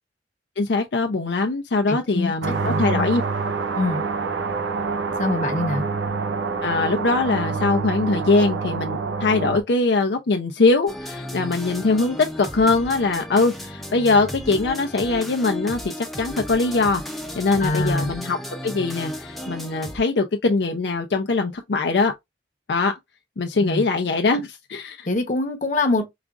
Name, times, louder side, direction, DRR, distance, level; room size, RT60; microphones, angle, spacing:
voice 1, 0.6-3.2 6.6-17.0 17.4-18.4 18.6-22.1 22.7-22.9 23.4-25.1, left 3 dB, 70° left, 0.5 m, -22 dB
voice 2, 1.9-3.1 3.7-4.0 5.2-5.8 17.6-18.1 23.6-23.8 25.1-26.0, left 2 dB, 45° left, 0.8 m, -24 dB
sound 1, 2.4-9.6, right 4 dB, 85° right, 0.6 m, -26 dB
sound 2, 10.9-20.0, equal, ahead, 0.6 m, -34 dB
4.9 x 2.4 x 2.4 m
head